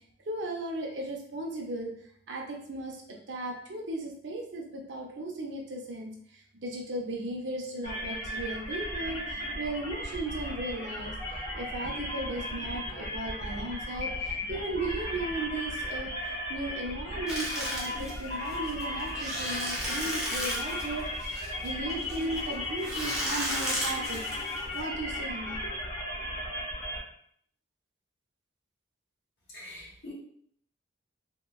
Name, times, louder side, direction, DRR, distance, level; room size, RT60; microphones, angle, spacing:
voice 1, 0.3-1.9 2.3-3.0 3.3-11.1 11.6-16.1 16.5-24.2 24.7-25.8, right 2 dB, 65° right, 0 dB, 0.6 m, -36 dB
sound 1, 7.8-27.0, left 1 dB, 35° left, 1.0 m, -36 dB
sound 2, 17.3-24.8, equal, 5° right, 0.6 m, -35 dB
voice 2, 29.5-30.1, left 1 dB, 60° left, -6 dB, 1.1 m, -44 dB
2.8 x 2.1 x 2.3 m, 0.64 s
head